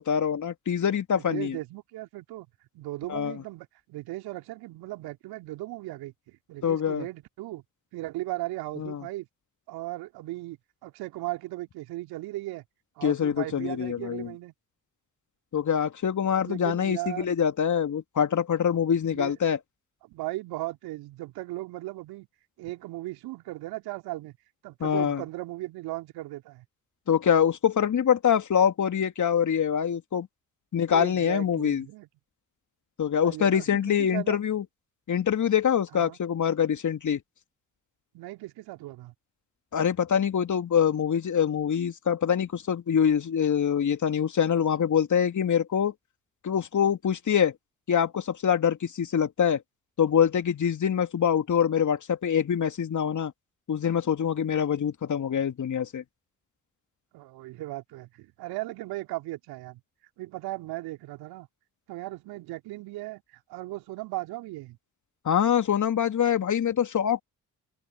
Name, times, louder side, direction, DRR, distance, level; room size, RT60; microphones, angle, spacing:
voice 1, 0.0-1.6 3.1-3.4 6.6-7.1 8.8-9.0 13.0-14.3 15.5-19.6 24.8-25.2 27.1-30.3 30.7-31.8 33.0-34.6 35.1-37.2 39.7-45.9 46.4-47.5 47.9-49.6 50.0-53.3 53.7-56.0 65.2-67.2, left 8 dB, 50° left, 3.0 m, -25 dB
voice 2, 1.3-2.5 2.7-7.6 7.9-9.3 9.7-12.6 13.0-14.5 16.4-17.3 19.1-19.3 20.0-22.3 22.6-24.3 24.6-26.6 30.9-32.1 33.2-34.4 35.9-36.2 38.1-39.1 57.1-59.8 60.2-61.5 61.9-64.8, right 18 dB, 70° right, 2.9 m, -37 dB
open air
figure-of-eight pair, 40°, 39 cm